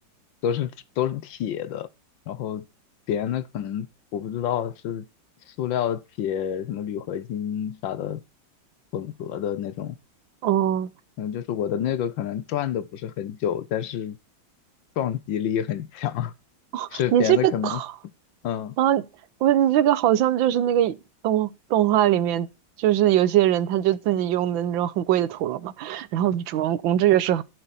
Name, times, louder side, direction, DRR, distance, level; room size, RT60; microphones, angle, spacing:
voice 1, 1.0-1.9 2.3-2.6 3.1-3.9 4.1-5.0 5.5-8.2 8.9-10.0 11.2-14.2 15.0-16.3 16.9-17.8 18.4-18.8, left 9 dB, 80° left, 1.6 m, -28 dB
voice 2, 10.4-10.9 16.7-17.9 18.8-19.0 19.4-21.0 21.2-22.5 22.8-27.4, right 12 dB, 85° right, 1.5 m, -21 dB
12.5 x 7.9 x 4.1 m
omnidirectional pair, 2.1 m